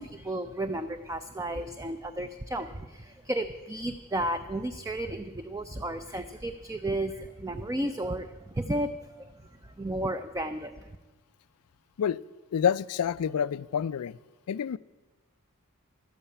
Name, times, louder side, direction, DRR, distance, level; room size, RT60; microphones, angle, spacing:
voice 1, 0.0-8.9 9.2-9.3 9.6-10.9, right 1 dB, 15° right, 9 dB, 0.4 m, -33 dB
voice 2, 12.5-14.1 14.5-14.8, left 8 dB, 75° left, 19 dB, 0.4 m, -27 dB
12.0 x 8.8 x 8.4 m, 1.2 s
head